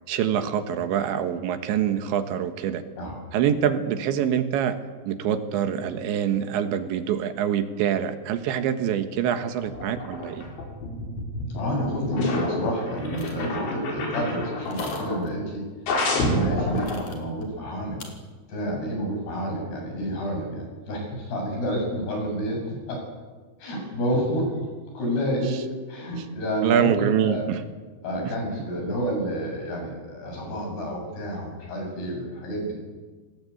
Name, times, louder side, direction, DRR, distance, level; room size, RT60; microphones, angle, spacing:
voice 1, 0.1-2.8 3.3-4.8 5.1-10.4 26.6-27.6, right 9 dB, 80° right, 8 dB, 3.7 m, -25 dB
sound 1, 9.6-15.3 15.9-17.0, left 1 dB, 80° left, 7.2 m, -29 dB
voice 2, 11.5-15.6 16.2-18.0 18.5-23.0 23.6-24.6 24.9-25.6 25.9-27.5 28.0-32.8, equal, 60° left, 1 dB, 9.7 m, -29 dB
sound 2, 13.2-13.5 14.6-15.3 16.7-17.4 18.0-18.1, left 4 dB, 45° left, 4.6 m, -43 dB
27.5 x 19.0 x 8.6 m, 1.4 s
omnidirectional pair, 5.1 m